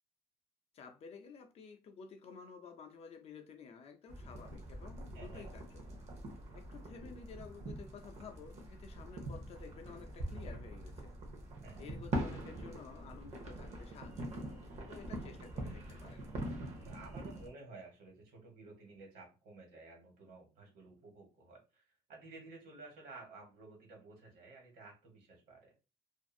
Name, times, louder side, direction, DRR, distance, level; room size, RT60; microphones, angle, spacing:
voice 1, 0.7-6.0 6.5-11.1 11.8-14.6 14.9-16.2, left 5 dB, 40° left, 0.4 m, -52 dB
sound 1, 4.1-17.5, right 1 dB, 40° right, 0.7 m, -43 dB
voice 2, 5.1-5.4 11.6-11.9 15.3-15.4 16.8-21.8 22.1-25.7, right 3 dB, 65° right, 1.3 m, -54 dB
2.5 x 2.4 x 2.5 m
cardioid pair, 175°, 16 cm